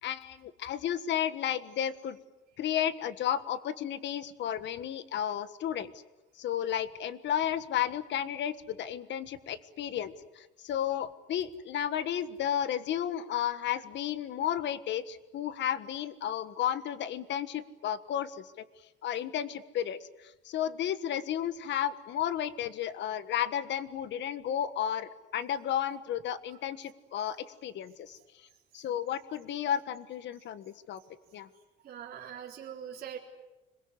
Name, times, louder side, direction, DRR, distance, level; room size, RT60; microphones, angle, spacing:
voice 1, 0.0-2.2 2.6-5.9 6.4-18.6 19.0-27.4 27.6-28.2 28.7-31.0 31.3-31.5, left 10 dB, 65° left, 13 dB, 1.5 m, -33 dB
voice 2, 31.8-33.2, right 9 dB, 50° right, -2 dB, 4.0 m, -42 dB
26.0 x 22.0 x 9.8 m, 1.1 s
cardioid pair, 140°, 20 cm